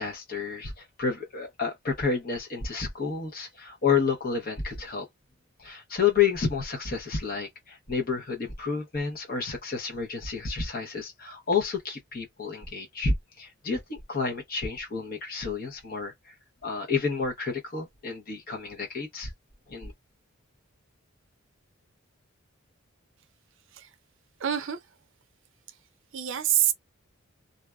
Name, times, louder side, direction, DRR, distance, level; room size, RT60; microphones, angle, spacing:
voice 1, 0.0-5.0 5.6-16.3 16.6-19.3 19.7-19.9, left 5 dB, 45° left, 0.8 m, -30 dB
voice 2, 24.4-24.8 26.1-26.7, right 10 dB, 65° right, 0.5 m, -26 dB
2.6 x 2.2 x 2.3 m
head